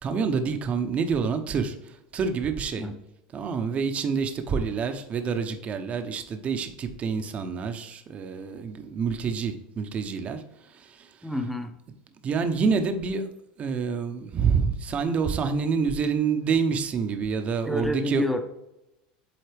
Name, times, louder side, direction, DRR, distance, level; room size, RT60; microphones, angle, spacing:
voice 1, 0.0-2.9 3.3-10.4 10.7-11.1 12.2-13.3 13.6-18.2, right 5 dB, 35° right, 7 dB, 0.8 m, -27 dB
voice 2, 11.2-11.7 17.6-18.4, left 1 dB, ahead, 6 dB, 0.8 m, -28 dB
7.9 x 3.9 x 3.4 m, 0.89 s
supercardioid pair, 120°, 4 cm